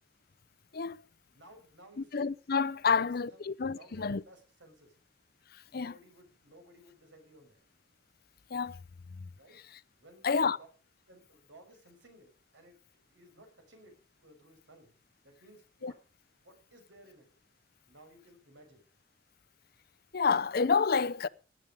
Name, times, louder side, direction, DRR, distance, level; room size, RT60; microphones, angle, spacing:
voice 1, 1.3-2.3 2.8-3.4 3.7-5.0 5.7-7.6 9.4-9.6 10.0-10.7 11.1-12.8 13.1-14.9 15.2-16.0 16.4-17.3 17.9-18.8, right 1 dB, 80° right, 5.8 m, -57 dB
voice 2, 2.0-4.2 5.5-5.9 8.5-8.8 9.1-9.3 10.2-10.6 15.8-15.9 20.1-21.3, left 5 dB, 55° left, 0.6 m, -29 dB
16.5 x 11.0 x 5.1 m
head